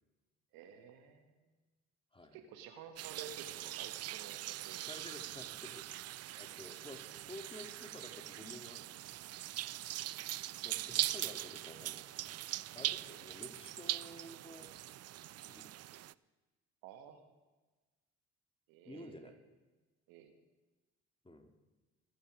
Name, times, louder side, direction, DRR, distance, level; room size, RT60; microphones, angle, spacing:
voice 1, 0.5-1.5 2.3-5.1 13.1-13.2 16.8-17.3 18.7-19.4 20.1-20.3, right 7 dB, 75° right, 6 dB, 1.7 m, -53 dB
sound 1, 3.0-16.1, right 14 dB, 45° right, 0.5 m, -41 dB
voice 2, 4.9-5.9 6.4-9.0 9.8-10.2 10.6-12.5 12.7-14.7 15.5-16.2 18.8-19.3 21.2-21.5, left 1 dB, 15° left, 6 dB, 2.6 m, -52 dB
26.5 x 8.9 x 5.1 m, 1.2 s
hypercardioid pair, 50°, 35 cm